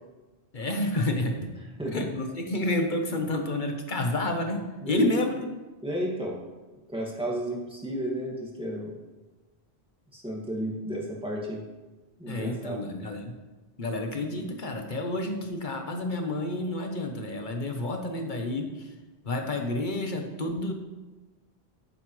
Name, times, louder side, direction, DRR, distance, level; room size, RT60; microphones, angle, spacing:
voice 1, 0.5-1.5 1.9-5.4 12.3-13.3 13.8-18.9 19.2-20.7, left 2 dB, 50° left, 4 dB, 1.3 m, -29 dB
voice 2, 1.8-2.1 4.8-5.1 5.8-6.4 6.9-8.9 10.1-11.6 12.2-12.8, right 1 dB, 5° right, -4 dB, 2.1 m, -32 dB
11.0 x 9.7 x 3.3 m, 1.2 s
omnidirectional pair, 1.1 m